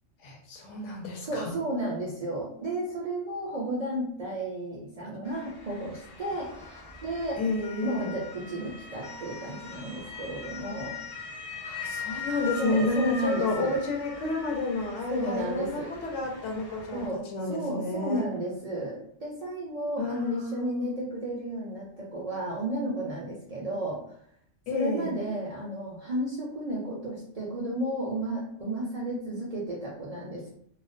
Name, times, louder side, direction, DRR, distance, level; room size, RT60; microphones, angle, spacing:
voice 1, 0.2-1.5 7.4-8.2 11.6-18.2 20.0-20.9 24.7-25.2, left 3 dB, 75° left, 0 dB, 0.9 m, -31 dB
voice 2, 1.2-7.4 7.8-11.0 12.6-13.8 15.1-15.9 16.9-17.2 17.5-24.0 24.7-30.5, right 1 dB, 60° right, -4 dB, 0.4 m, -33 dB
Motor vehicle (road) / Siren, 5.3-17.1, left 4 dB, 30° left, 0.4 m, -41 dB
2.4 x 2.1 x 2.4 m, 0.64 s
omnidirectional pair, 1.3 m